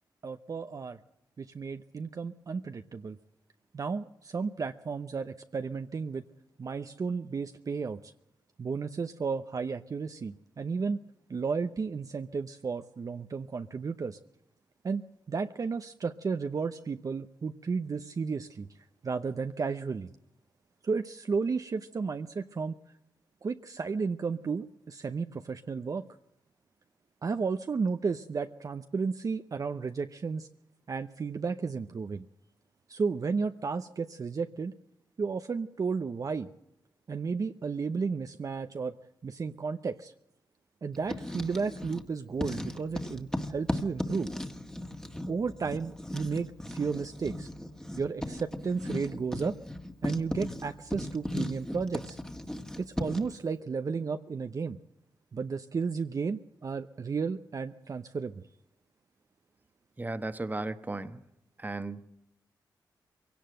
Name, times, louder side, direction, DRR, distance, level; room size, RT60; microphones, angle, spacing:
voice 1, 0.2-1.0 1.4-3.2 3.7-6.2 6.6-8.1 8.6-11.0 11.3-14.2 14.8-15.0 15.3-18.7 19.0-20.1 20.8-22.7 23.4-26.0 27.2-30.5 30.9-32.2 32.9-34.7 35.2-36.5 37.1-38.9 39.2-40.1 40.8-44.3 45.3-47.5 48.0-49.6 50.0-52.2 52.8-54.8 55.3-58.3, right 5 dB, 45° right, 8 dB, 0.7 m, -33 dB
Writing, 40.9-42.1 42.4-53.4, left 1 dB, 10° left, 1.8 m, -37 dB
voice 2, 60.0-61.2 61.6-62.1, right 2 dB, 20° right, 11 dB, 1.2 m, -35 dB
22.0 x 17.5 x 7.7 m, 0.80 s
cardioid pair, 70°, 8 cm